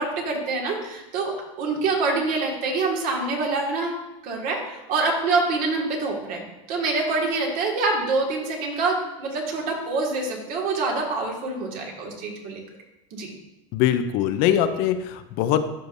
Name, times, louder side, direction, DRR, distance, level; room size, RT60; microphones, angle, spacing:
voice 1, 0.0-6.4 6.7-12.6 13.1-13.3, right 3 dB, 55° right, 0 dB, 2.0 m, -26 dB
voice 2, 13.7-15.6, left 10 dB, 60° left, 10 dB, 0.6 m, -22 dB
13.0 x 5.1 x 2.6 m, 0.97 s
supercardioid pair, 120°, 17 cm